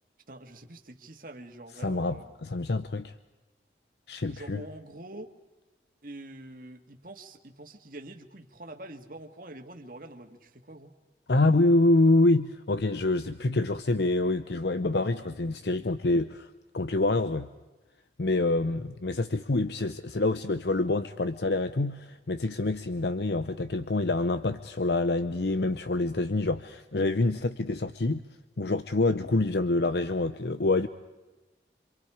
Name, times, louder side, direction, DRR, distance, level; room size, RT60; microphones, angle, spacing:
voice 1, 0.3-2.3 4.3-5.3 6.0-10.9, right 1 dB, 50° right, 4 dB, 2.0 m, -45 dB
voice 2, 1.8-3.1 4.1-4.6 11.3-16.5 16.7-17.5 18.2-28.2 28.6-30.9, left 2 dB, 70° left, 11 dB, 0.8 m, -26 dB
27.0 x 26.5 x 5.0 m, 1.1 s
head